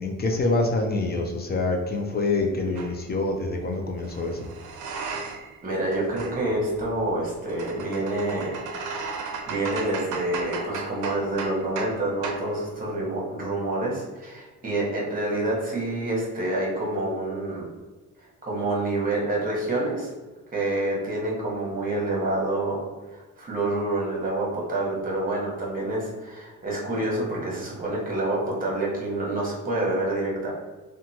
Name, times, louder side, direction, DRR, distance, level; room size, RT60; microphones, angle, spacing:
voice 1, 0.0-4.5, left 2 dB, 35° left, 2 dB, 0.4 m, -26 dB
sound 1, 2.8-2.9 4.0-5.6 5.8-12.0 12.2-12.5, right 4 dB, 80° right, 0.5 m, -35 dB
voice 2, 5.6-8.6 9.5-17.7 18.4-20.1 20.5-22.8 23.1-30.5, right 2 dB, 30° right, -3 dB, 1.1 m, -27 dB
2.8 x 2.3 x 2.7 m, 1.2 s
cardioid pair, 90°, 30 cm